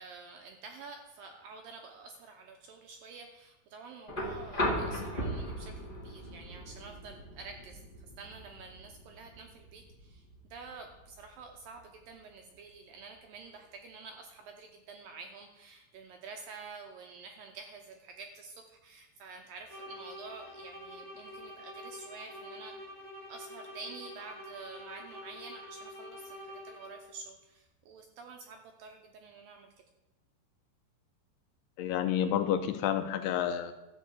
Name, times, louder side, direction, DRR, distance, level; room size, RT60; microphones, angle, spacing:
voice 1, 0.0-22.7 23.3-29.8, right 4 dB, 75° right, 3 dB, 2.2 m, -49 dB
sound 1, 4.1-12.1 13.5-13.6, equal, 40° left, 0.6 m, -38 dB
sound 2, 19.6-27.2, equal, 20° left, 1.5 m, -47 dB
voice 2, 31.8-33.7, left 9 dB, 80° left, 9 dB, 2.5 m, -29 dB
13.0 x 4.7 x 8.2 m, 1.0 s
omnidirectional pair, 4.9 m